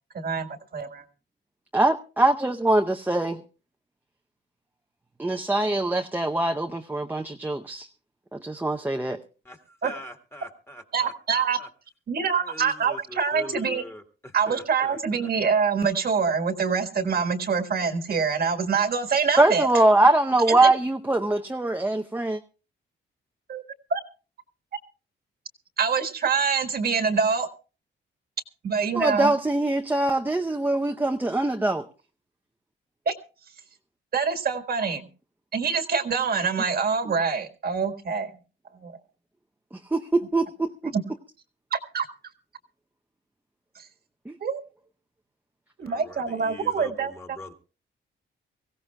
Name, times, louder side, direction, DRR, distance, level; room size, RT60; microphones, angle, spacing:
voice 1, 0.1-1.0 9.8-9.9 10.9-11.6 12.1-13.8 14.3-19.7 20.5-20.7 23.5-23.6 23.9-24.0 25.8-27.5 28.6-29.3 33.0-33.1 34.1-35.1 35.5-38.3 38.8-39.0 40.9-41.0 41.7-42.1 43.7-43.9 44.4-44.6 45.8-47.4, right 5 dB, 50° right, 7 dB, 1.6 m, -25 dB
voice 2, 1.7-3.4 5.2-7.9 8.3-9.2 19.4-22.4 28.9-31.8 39.7-40.9 44.3-44.4, right 2 dB, 10° right, 3 dB, 0.7 m, -23 dB
voice 3, 9.8-11.1 11.6-11.7 12.5-14.0 14.5-15.0 45.8-47.5, left 1 dB, 15° left, 6 dB, 1.8 m, -42 dB
24.0 x 16.0 x 2.2 m, 0.34 s
cardioid pair, 120°, 20 cm